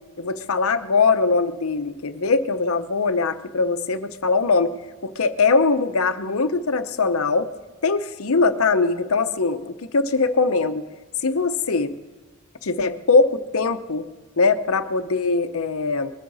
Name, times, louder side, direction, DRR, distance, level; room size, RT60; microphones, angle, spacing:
voice 1, 0.2-4.7 5.0-7.5 7.8-10.8 11.2-11.9 12.6-14.1 14.4-16.1, left 4 dB, 80° left, 9 dB, 0.9 m, -21 dB
21.5 x 12.5 x 4.1 m, 1.3 s
head